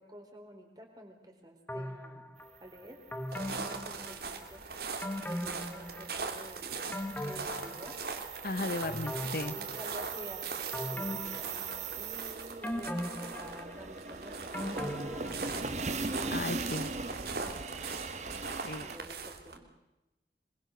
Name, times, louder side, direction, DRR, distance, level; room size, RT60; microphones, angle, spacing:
voice 1, 0.0-2.3 2.6-3.0 3.7-4.7 5.2-6.8 7.2-8.0 9.5-16.0 16.3-18.1 18.8-19.7, equal, 20° right, 2 dB, 4.5 m, -51 dB
sound 1, 1.7-2.5 3.1-4.6 5.0-6.3 6.7-8.4 8.8-10.2 10.7-12.2 12.6-15.9 16.2-16.3, left 1 dB, 10° left, 1.3 m, -40 dB
sound 2, 2.5-19.0, right 4 dB, 40° right, 1.2 m, -41 dB
sound 3, 3.3-19.6, right 4 dB, 60° right, 2.7 m, -41 dB
voice 2, 8.4-9.6 16.3-16.9 18.6-18.9, left 2 dB, 50° left, 13 dB, 0.8 m, -35 dB
25.0 x 22.0 x 6.7 m, 0.95 s
head